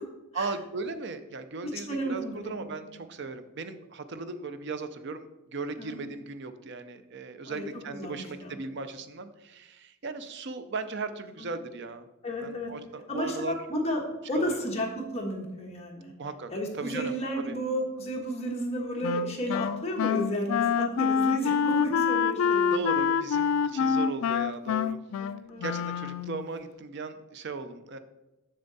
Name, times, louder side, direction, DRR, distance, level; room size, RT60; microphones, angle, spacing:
voice 1, 0.3-12.1 12.4-13.5 14.3-14.6 16.2-16.5 16.8-17.6 22.7-25.0 25.6-28.0, right 3 dB, 50° right, 10 dB, 0.5 m, -37 dB
voice 2, 1.6-2.8 5.8-6.0 7.5-7.6 7.9-8.6 11.4-11.5 12.2-12.7 13.1-13.4 13.7-14.0 14.3-16.1 16.5-22.8 23.7-23.9 25.2-25.7, equal, 30° left, 0 dB, 1.4 m, -32 dB
Wind instrument woodwind instrument, 19.0-26.5, left 6 dB, 75° left, 0.3 m, -26 dB
7.0 x 6.6 x 4.0 m, 0.97 s
head